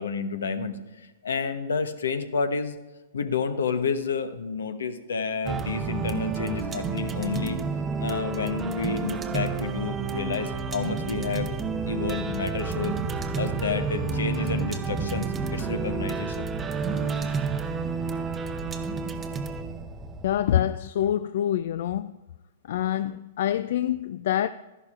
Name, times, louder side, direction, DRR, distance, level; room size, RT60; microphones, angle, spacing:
voice 1, 0.0-2.8 3.1-7.6 8.0-11.6 11.9-13.0 13.3-16.5, left 5 dB, 80° left, 0.9 m, -30 dB
sound 1, 5.5-20.8, right 5 dB, 20° right, 0.7 m, -30 dB
voice 2, 20.2-22.1 22.6-24.5, left 11 dB, 65° left, 0.3 m, -26 dB
13.0 x 11.0 x 2.4 m
hypercardioid pair, 115°, 0 cm